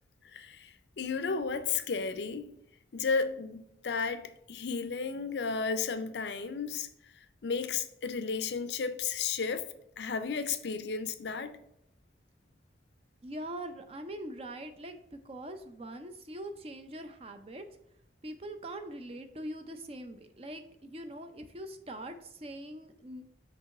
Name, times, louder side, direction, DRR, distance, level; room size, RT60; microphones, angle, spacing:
voice 1, 0.3-2.5 2.9-6.9 7.4-9.7 10.0-11.5, left 5 dB, 70° left, 0.5 m, -33 dB
voice 2, 13.2-17.6 18.2-23.2, right 1 dB, 35° right, 0.5 m, -42 dB
5.9 x 3.0 x 5.3 m
head